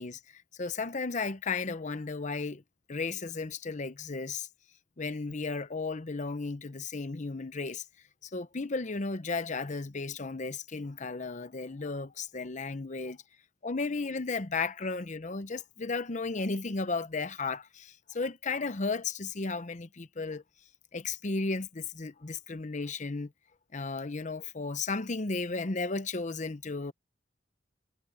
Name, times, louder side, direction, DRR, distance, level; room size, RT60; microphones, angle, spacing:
voice 1, 0.0-2.6 2.9-4.5 5.0-7.8 8.2-13.2 13.6-20.4 20.9-23.3 23.7-26.9, left 3 dB, 40° left, 0.8 m, -34 dB
head